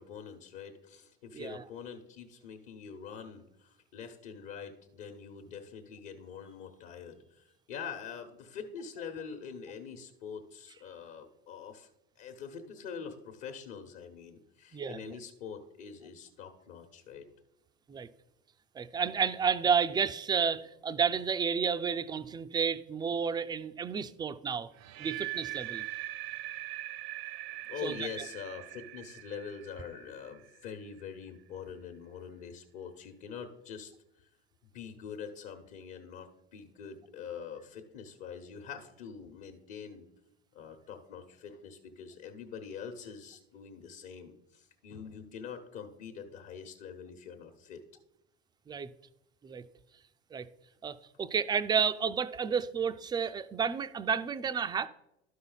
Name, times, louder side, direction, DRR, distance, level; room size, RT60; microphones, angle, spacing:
voice 1, 0.0-11.9 12.2-17.3 27.7-33.9 34.7-40.1 40.5-47.8, left 6 dB, 60° left, 1.2 m, -44 dB
voice 2, 14.7-15.2 17.9-18.1 18.7-24.7 25.0-25.8 27.8-28.0 48.7-48.9 49.4-49.6 50.3-50.5 50.8-54.9, right 6 dB, 15° right, 0.3 m, -31 dB
sound 1, 24.7-30.8, right 16 dB, 55° right, 0.6 m, -41 dB
12.0 x 5.7 x 4.0 m
hypercardioid pair, 90°, 33 cm